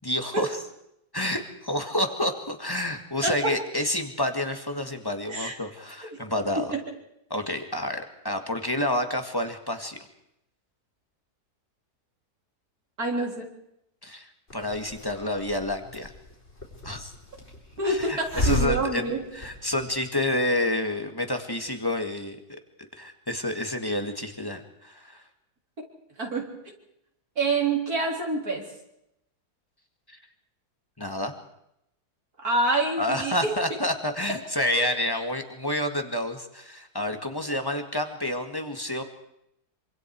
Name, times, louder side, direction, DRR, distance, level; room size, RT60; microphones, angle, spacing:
voice 1, 0.0-0.6 1.1-6.7 7.3-10.0 14.0-16.1 16.8-17.1 17.8-19.0 19.3-22.6 22.9-25.2 30.1-30.2 31.0-31.3 33.0-39.0, left 1 dB, 15° left, 6 dB, 2.1 m, -29 dB
voice 2, 3.2-3.5 5.3-5.5 6.6-6.8 13.0-13.5 17.8-19.2 26.2-26.5 27.4-28.6 32.4-33.5 34.8-34.9, right 3 dB, 70° right, 1 dB, 4.5 m, -26 dB
Hiss, 14.5-20.0, left 2 dB, 40° left, 4.8 m, -34 dB
26.5 x 25.5 x 4.8 m, 0.80 s
omnidirectional pair, 1.7 m